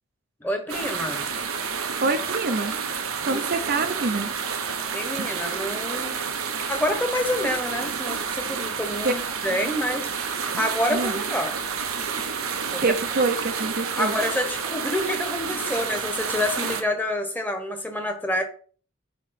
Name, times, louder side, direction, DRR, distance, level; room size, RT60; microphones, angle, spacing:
voice 1, 0.4-1.3 3.2-3.4 4.9-6.2 6.7-11.5 12.7-13.0 14.0-18.4, left 1 dB, 10° left, 4 dB, 1.2 m, -28 dB
sound 1, 0.7-16.8, right 6 dB, 90° right, 1.0 m, -29 dB
voice 2, 2.0-2.7 3.2-4.3 9.0-9.1 10.9-11.2 12.8-14.2, right 3 dB, 45° right, 7 dB, 0.6 m, -25 dB
8.4 x 3.1 x 5.8 m, 0.43 s
head